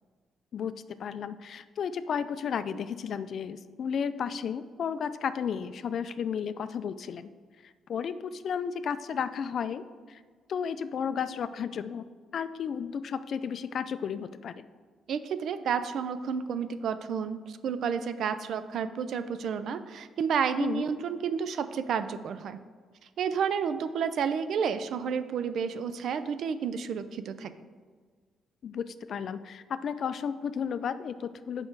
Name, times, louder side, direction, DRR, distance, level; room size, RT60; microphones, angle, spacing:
voice 1, 1.0-7.3 7.6-10.2 10.5-12.1 12.3-14.7 20.6-20.9 28.6-31.7, left 7 dB, 60° left, 13 dB, 0.3 m, -33 dB
voice 2, 15.1-22.6 23.2-27.5, right 7 dB, 70° right, 12 dB, 0.4 m, -31 dB
6.4 x 5.2 x 4.6 m, 1.5 s
cardioid pair, 90°, 0 cm